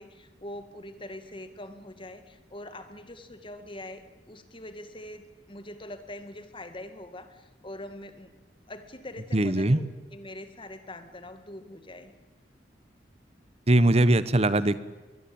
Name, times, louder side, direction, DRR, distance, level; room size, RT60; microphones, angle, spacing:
voice 1, 0.0-8.3 8.7-12.1, left 1 dB, 30° left, 9 dB, 2.1 m, -43 dB
voice 2, 9.3-9.8 13.7-14.8, right 1 dB, 35° right, 16 dB, 1.1 m, -21 dB
22.0 x 21.5 x 8.8 m, 1.2 s
head